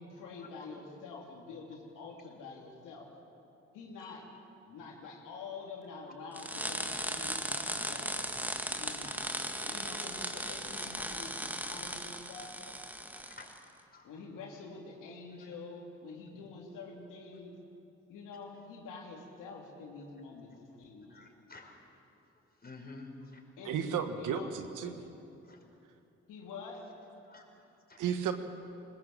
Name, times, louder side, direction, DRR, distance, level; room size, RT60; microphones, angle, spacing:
voice 1, 0.0-3.4 3.7-9.1 9.4-12.5 14.0-17.5 18.1-21.2 23.6-24.5 24.8-25.1 26.3-27.1, left 4 dB, 80° left, 0 dB, 2.9 m, -47 dB
sound 1, 6.3-13.6, equal, 5° right, 1.9 m, -37 dB
voice 2, 8.9-9.3 11.3-11.5 12.1-12.2 13.1-14.1 15.4-15.5 17.3-17.4 21.1-21.9 22.3-23.4 25.4-25.7 27.2-28.0, left 3 dB, 30° left, 1 dB, 5.1 m, -52 dB
voice 3, 23.6-24.9 28.0-28.3, right 8 dB, 75° right, 8 dB, 1.4 m, -33 dB
20.5 x 20.5 x 7.4 m, 2.8 s
hypercardioid pair, 45°, 31 cm